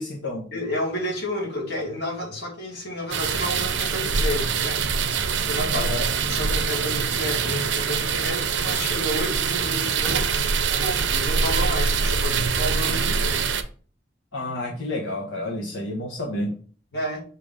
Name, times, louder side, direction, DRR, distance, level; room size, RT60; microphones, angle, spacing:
voice 1, 0.0-0.5 5.7-6.1 14.3-16.5, left 1 dB, 90° left, -1 dB, 1.2 m, -30 dB
voice 2, 0.5-4.8 5.4-5.9 6.2-13.4 16.9-17.2, left 1 dB, 60° left, -1 dB, 2.2 m, -31 dB
sound 1, 3.1-13.6, right 5 dB, 75° right, 0.6 m, -24 dB
7.0 x 2.9 x 4.8 m, 0.42 s
head